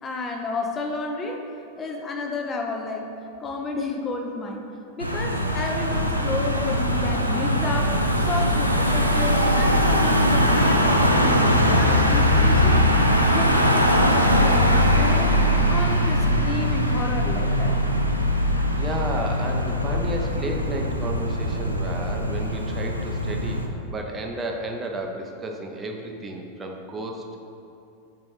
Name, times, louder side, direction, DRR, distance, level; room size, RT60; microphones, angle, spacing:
voice 1, 0.0-1.5 1.8-3.1 3.4-4.6 5.0-12.9 13.3-15.4 15.7-17.8, left 3 dB, 20° left, 2 dB, 0.5 m, -31 dB
Car passing by / Engine, 5.0-23.7, equal, 90° right, 0.4 m, -21 dB
voice 2, 18.7-23.6 23.9-27.4, right 1 dB, 20° right, 2 dB, 0.6 m, -32 dB
4.7 x 4.2 x 5.5 m, 2.7 s
figure-of-eight pair, 90°, 0 cm